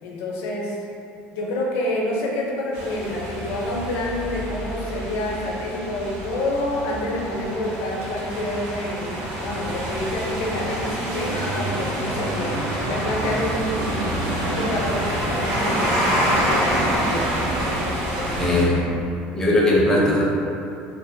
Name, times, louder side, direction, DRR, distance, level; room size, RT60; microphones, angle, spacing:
voice 1, 0.0-0.8 1.3-14.1 14.4-18.5, left 1 dB, 75° left, -3 dB, 0.5 m, -28 dB
sound 1, 2.7-18.7, right 1 dB, 70° right, 0.6 m, -26 dB
voice 2, 18.3-18.8 19.3-20.2, left 1 dB, 15° left, -4 dB, 0.6 m, -19 dB
2.7 x 2.1 x 2.5 m, 2.5 s
supercardioid pair, 95°, 4 cm